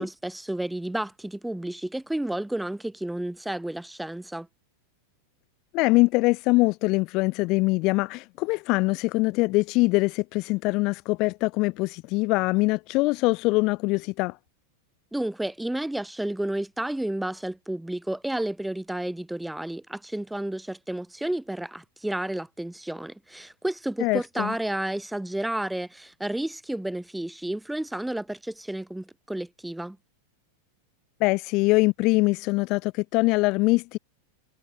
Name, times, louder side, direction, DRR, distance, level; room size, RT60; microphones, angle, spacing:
voice 1, 0.0-4.5 15.1-30.0, right 1 dB, 5° right, 5.4 m, -31 dB
voice 2, 5.7-14.4 24.0-24.5 31.2-34.0, left 24 dB, 40° left, 1.0 m, -23 dB
figure-of-eight pair, 90°, 0 cm